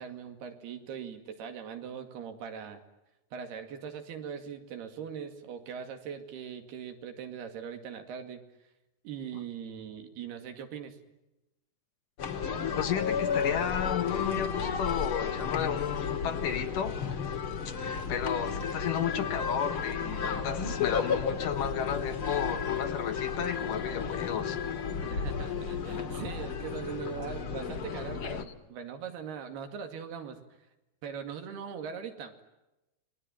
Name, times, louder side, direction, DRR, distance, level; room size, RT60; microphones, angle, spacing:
voice 1, 0.0-2.8 3.3-8.4 9.0-11.0 25.0-30.5 31.0-32.4, right 7 dB, 85° right, 6 dB, 4.3 m, -41 dB
sound 1, 12.2-28.4, left 6 dB, 45° left, 1.9 m, -33 dB
voice 2, 12.8-17.0 17.7-24.6 28.2-28.4, left 8 dB, 65° left, 8 dB, 2.7 m, -33 dB
29.0 x 21.5 x 9.1 m, 0.96 s
omnidirectional pair, 4.5 m